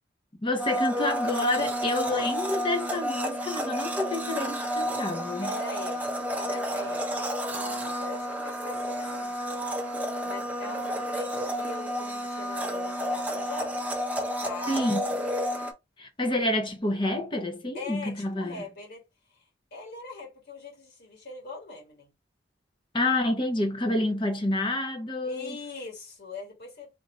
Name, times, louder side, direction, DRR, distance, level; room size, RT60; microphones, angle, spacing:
voice 1, 0.4-5.5 14.7-15.0 16.0-18.7 22.9-25.6, left 1 dB, 25° left, 0.8 m, -28 dB
Domestic sounds home sounds, 0.6-15.7, equal, 10° right, 0.7 m, -31 dB
voice 2, 5.4-9.4 10.2-13.8 14.2-14.8 15.0-15.2 17.7-19.0 19.7-22.1 25.2-26.9, left 2 dB, 60° left, 1.6 m, -41 dB
3.7 x 2.6 x 3.1 m
head